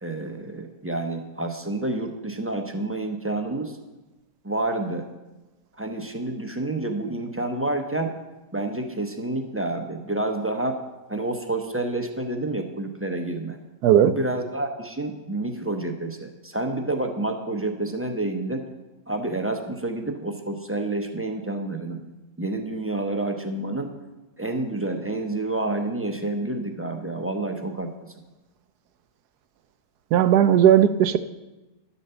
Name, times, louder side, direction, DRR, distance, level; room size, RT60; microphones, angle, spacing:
voice 1, 0.0-3.8 4.4-5.1 5.8-8.1 8.5-10.8 11.1-13.6 14.0-18.6 19.1-22.0 22.4-23.9 24.4-28.1, right 2 dB, 15° right, 4 dB, 0.6 m, -29 dB
voice 2, 13.8-14.1 30.1-31.2, right 10 dB, 80° right, 12 dB, 1.2 m, -16 dB
11.5 x 7.3 x 6.9 m, 1.1 s
omnidirectional pair, 1.7 m